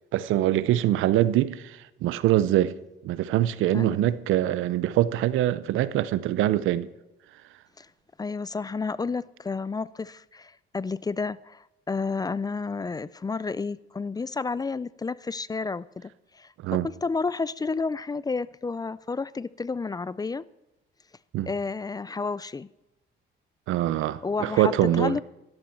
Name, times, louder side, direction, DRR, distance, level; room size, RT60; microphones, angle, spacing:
voice 1, 0.1-2.7 3.0-6.9 16.6-16.9 21.3-21.5 23.7-25.2, right 13 dB, 90° right, 0.6 m, -24 dB
voice 2, 3.7-4.1 7.8-7.9 8.2-16.5 16.8-20.4 21.5-22.7 24.2-25.2, left 4 dB, 20° left, 0.4 m, -31 dB
12.0 x 11.5 x 4.4 m
cardioid pair, 90°, 20 cm